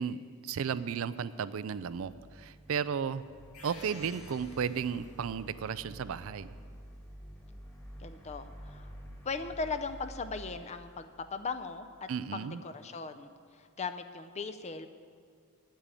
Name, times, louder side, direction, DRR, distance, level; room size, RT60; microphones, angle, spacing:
voice 1, 0.0-3.2 3.6-6.5 12.1-12.6, right 7 dB, 65° right, 15 dB, 0.4 m, -34 dB
sound 1, 1.7-11.9, equal, 15° left, 1.6 m, -50 dB
sound 2, 3.5-5.4, left 2 dB, 85° left, 1.8 m, -52 dB
voice 2, 8.0-8.9 9.2-14.9, left 4 dB, 30° left, 9 dB, 0.5 m, -38 dB
8.9 x 8.5 x 8.9 m, 2.1 s
head